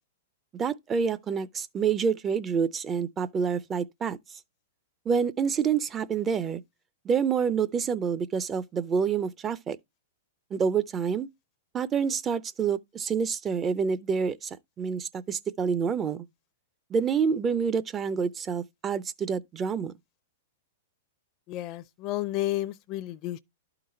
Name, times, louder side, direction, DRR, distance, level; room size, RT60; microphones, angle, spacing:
voice 1, 0.5-4.2 5.1-6.6 7.1-9.8 10.5-11.3 11.7-14.5 14.8-16.2 16.9-19.9, right 6 dB, 20° right, 0.5 m, -27 dB
voice 2, 21.5-23.4, left 15 dB, 35° left, 0.5 m, -31 dB
11.5 x 3.9 x 4.3 m
hypercardioid pair, 150°, 0 cm